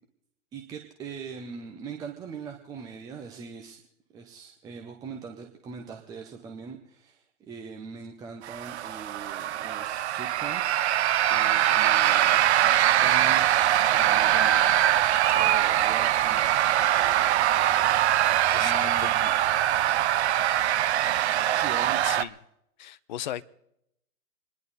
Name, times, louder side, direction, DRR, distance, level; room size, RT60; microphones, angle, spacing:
voice 1, 0.5-3.8 4.1-10.9 11.3-12.5 13.0-16.6 18.6-19.3 19.8-19.9 21.5-22.2, right 5 dB, 10° right, 0.6 m, -42 dB
sound 1, 8.4-22.2, right 12 dB, 45° right, 0.7 m, -23 dB
sound 2, 14.4-20.4, right 11 dB, 25° right, 1.8 m, -49 dB
voice 2, 18.5-19.4 22.0-22.3 22.8-23.4, left 11 dB, 30° left, 0.5 m, -37 dB
27.0 x 10.5 x 4.1 m
hypercardioid pair, 135°, 45 cm